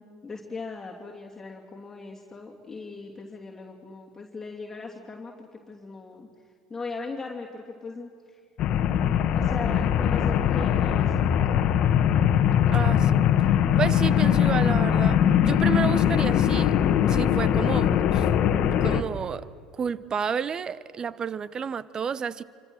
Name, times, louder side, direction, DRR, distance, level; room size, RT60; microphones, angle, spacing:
voice 1, 0.0-6.3 6.7-8.4 9.3-11.5, left 4 dB, 20° left, 3.0 m, -39 dB
sound 1, 8.6-19.0, left 9 dB, 50° left, 1.4 m, -21 dB
voice 2, 12.7-13.5 13.8-15.2 15.5-16.7 17.1-18.3 18.8-19.5 19.8-22.4, right 6 dB, 35° right, 0.8 m, -30 dB
27.0 x 25.5 x 6.4 m
hypercardioid pair, 70°, 2 cm